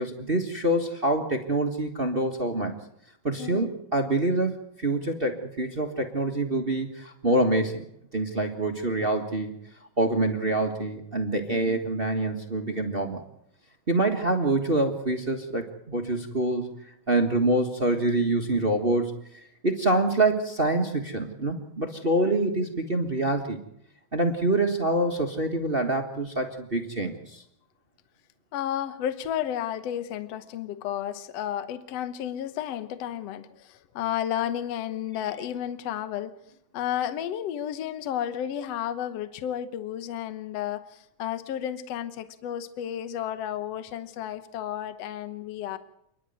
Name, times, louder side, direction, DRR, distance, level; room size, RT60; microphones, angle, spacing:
voice 1, 0.0-2.8 3.2-7.8 8.1-9.6 10.0-13.2 13.9-16.7 17.1-19.1 19.6-23.6 24.1-27.4, right 2 dB, 30° right, 5 dB, 1.1 m, -26 dB
voice 2, 3.4-3.7 11.5-11.8 28.5-36.3 36.7-45.8, left 10 dB, 65° left, 11 dB, 2.0 m, -32 dB
28.5 x 11.0 x 9.2 m, 0.76 s
omnidirectional pair, 3.4 m